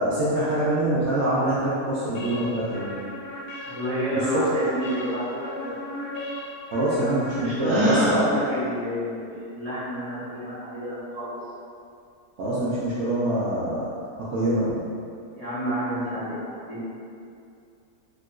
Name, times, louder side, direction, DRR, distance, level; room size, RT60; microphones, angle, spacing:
voice 1, 0.0-2.9 4.1-4.4 6.7-8.4 12.4-13.9 14.2-14.9, right 1 dB, 65° right, -9 dB, 0.8 m, -25 dB
sound 1, 2.1-8.0, left 1 dB, 60° left, 0.6 m, -36 dB
voice 2, 3.6-5.7 7.3-11.4 15.3-16.8, equal, 30° left, -14 dB, 1.0 m, -29 dB
Gasp, 7.6-8.2, left 1 dB, 90° right, 1.2 m, -23 dB
3.7 x 2.4 x 2.3 m, 2.5 s
omnidirectional pair, 1.5 m